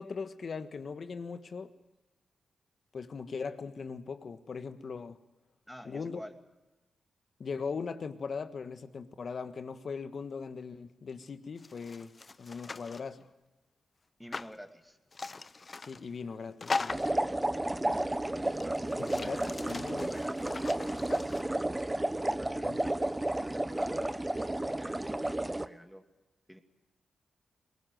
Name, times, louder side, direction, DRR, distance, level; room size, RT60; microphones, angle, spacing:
voice 1, 0.0-1.7 2.9-5.2 5.8-6.2 7.4-12.1 12.4-13.3 15.8-17.0 19.0-20.1 22.6-22.8, left 5 dB, 60° left, 1.4 m, -39 dB
voice 2, 5.7-6.4 14.2-15.0 17.5-21.7 22.1-24.2 24.6-26.0 26.5-26.6, equal, ahead, 2.6 m, -48 dB
sound 1, 11.6-13.1 14.3-14.5 15.1-16.1 16.6-17.2 18.0-18.1 18.4-21.4, left 3 dB, 40° left, 0.7 m, -39 dB
sound 2, 16.9-25.7, right 1 dB, 20° right, 1.0 m, -32 dB
22.5 x 20.0 x 7.8 m
cardioid pair, 60°, 0 cm